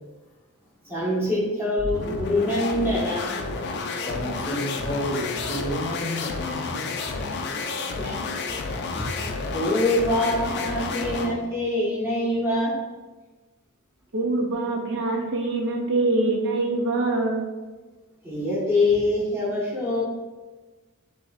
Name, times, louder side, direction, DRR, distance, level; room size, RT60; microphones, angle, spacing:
voice 1, 0.8-3.4 7.4-7.6 7.9-8.6 8.8-9.0 9.5-12.8 18.2-20.0, left 1 dB, 10° right, -8 dB, 1.4 m, -25 dB
sound 1, 1.8-11.4, left 4 dB, 50° left, 0.4 m, -30 dB
voice 2, 4.0-7.6, equal, 10° left, -6 dB, 1.3 m, -32 dB
voice 3, 14.1-17.4, right 2 dB, 55° right, 0 dB, 0.6 m, -24 dB
5.8 x 2.6 x 2.4 m, 1.2 s
head